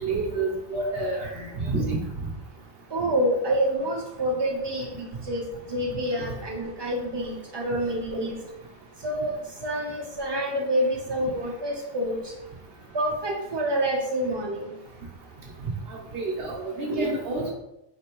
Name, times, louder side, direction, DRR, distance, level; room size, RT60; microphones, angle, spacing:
voice 1, 0.0-2.0 16.1-17.5, right 3 dB, 50° right, -2 dB, 1.0 m, -29 dB
voice 2, 2.9-5.4 5.7-8.4 9.0-9.3 9.6-12.3 12.9-14.7 16.9-17.1, right 1 dB, 25° right, -2 dB, 0.6 m, -27 dB
4.4 x 3.2 x 3.0 m, 0.89 s
omnidirectional pair, 1.4 m